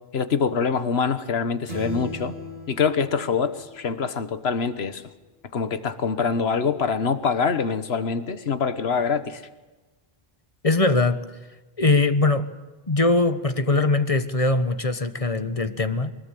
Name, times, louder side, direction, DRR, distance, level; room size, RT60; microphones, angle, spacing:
voice 1, 0.1-2.3 2.7-5.0 5.5-9.4, left 5 dB, 80° left, 11 dB, 1.5 m, -24 dB
sound 1, 1.7-4.3, left 1 dB, 50° right, 2.7 m, -37 dB
voice 2, 10.6-11.2 11.8-12.5 12.9-16.1, left 2 dB, 35° left, 10 dB, 1.3 m, -21 dB
23.5 x 20.5 x 9.1 m, 1.2 s
omnidirectional pair, 1.1 m